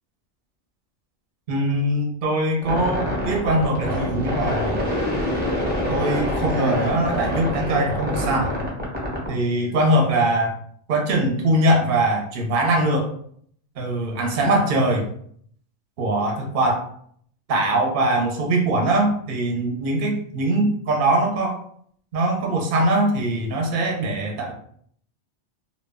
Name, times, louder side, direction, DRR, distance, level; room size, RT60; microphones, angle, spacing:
voice 1, 1.5-4.8 5.9-8.6 9.3-10.5 10.9-13.1 13.8-15.1 16.0-16.9 17.5-21.6 22.1-24.5, right 1 dB, 55° right, 1 dB, 0.7 m, -22 dB
sound 1, 2.6-9.3, left 1 dB, 10° right, 0.6 m, -25 dB
2.2 x 2.1 x 3.4 m, 0.62 s
omnidirectional pair, 1.2 m